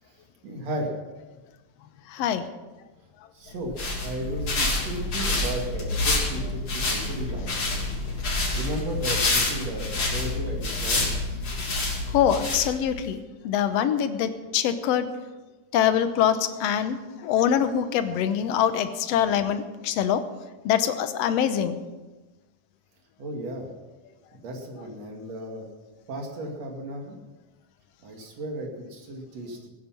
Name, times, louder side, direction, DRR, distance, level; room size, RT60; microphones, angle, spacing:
voice 1, 0.1-0.9 3.3-7.8 8.2-11.4 23.2-23.7 24.3-25.7 26.1-27.2 28.0-29.7, right 1 dB, 60° right, 1 dB, 3.5 m, -35 dB
voice 2, 2.1-2.4 12.1-15.1 15.7-20.2 20.7-21.8, left 9 dB, 70° left, 10 dB, 1.9 m, -24 dB
sound 1, 3.5-13.0, left 2 dB, 45° left, 3.8 m, -27 dB
18.5 x 10.0 x 6.0 m, 1.2 s
omnidirectional pair, 3.4 m